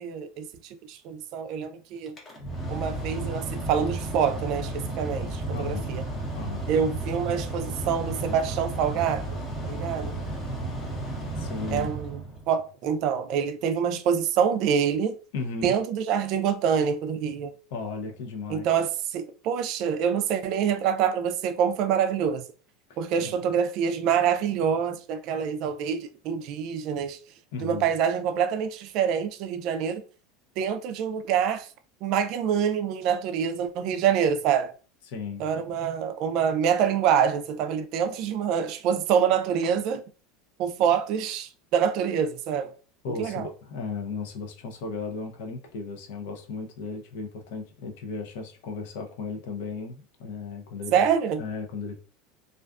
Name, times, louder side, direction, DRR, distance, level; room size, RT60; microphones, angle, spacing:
voice 1, 0.0-2.2 2.7-6.0 6.7-9.4 9.6-10.1 11.7-12.2 12.5-15.2 15.6-17.5 18.5-22.4 23.0-27.2 27.6-30.0 30.6-31.7 32.0-34.7 35.4-40.0 40.6-42.7 43.2-43.5 50.9-51.4, right 7 dB, 55° right, 0.3 m, -26 dB
Mechanical fan, 2.1-12.6, right 2 dB, 20° left, 0.8 m, -33 dB
voice 2, 5.5-5.9 6.3-6.7 11.4-11.9 15.3-15.7 17.7-18.7 23.2-23.4 27.5-27.9 35.1-35.4 43.0-51.1 51.4-52.0, left 4 dB, 75° left, 0.6 m, -35 dB
2.4 x 2.3 x 2.3 m
supercardioid pair, 135°, 0 cm